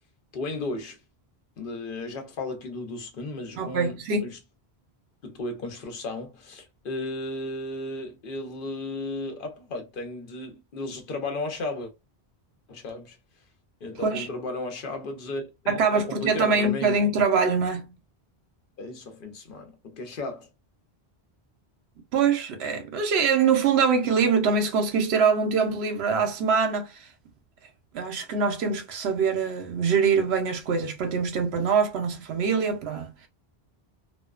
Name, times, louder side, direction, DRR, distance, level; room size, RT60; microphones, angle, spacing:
voice 1, 0.3-1.0 1.6-4.4 5.2-11.9 12.7-13.2 13.8-17.0 18.8-20.5, left 2 dB, 60° left, 0.9 m, -35 dB
voice 2, 3.6-4.3 14.0-14.3 15.7-18.0 22.1-27.1 27.9-33.3, right 5 dB, 80° right, 0.9 m, -24 dB
2.4 x 2.2 x 2.3 m
omnidirectional pair, 1.1 m